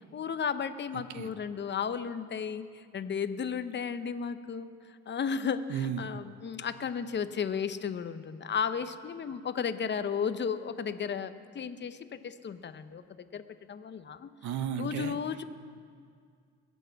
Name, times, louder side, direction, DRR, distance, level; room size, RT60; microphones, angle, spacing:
voice 1, 0.1-4.7 5.1-13.4 13.7-14.3 14.8-15.4, left 6 dB, 35° left, 11 dB, 0.7 m, -34 dB
voice 2, 0.9-1.3 5.7-6.2 14.4-15.2, right 8 dB, 75° right, 12 dB, 0.8 m, -34 dB
22.0 x 8.3 x 4.6 m, 2.2 s
cardioid pair, 90°, 30 cm